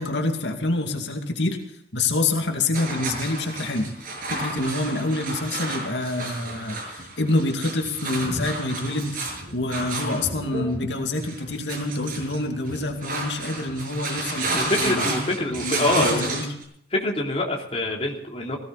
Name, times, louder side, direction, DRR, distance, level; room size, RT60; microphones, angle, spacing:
voice 1, 0.0-1.6 1.9-3.9 4.3-16.5, left 2 dB, 90° left, 3 dB, 2.4 m, -27 dB
sound 1, 2.7-16.6, right 2 dB, 50° right, 7.0 m, -32 dB
voice 2, 14.5-16.4 16.9-18.6, left 1 dB, 35° left, -1 dB, 3.3 m, -25 dB
19.0 x 16.5 x 4.1 m, 0.69 s
head